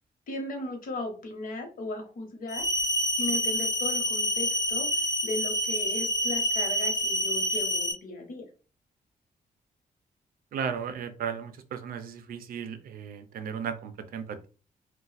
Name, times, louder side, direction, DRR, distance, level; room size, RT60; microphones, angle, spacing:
voice 1, 0.3-2.7 3.2-8.5, left 2 dB, 70° left, 3 dB, 1.0 m, -36 dB
sound 1, 2.5-7.9, equal, 25° left, 0.4 m, -27 dB
voice 2, 10.5-14.5, right 7 dB, 90° right, 9 dB, 0.5 m, -35 dB
2.5 x 2.2 x 3.9 m, 0.36 s
wide cardioid pair, 175°, 15 cm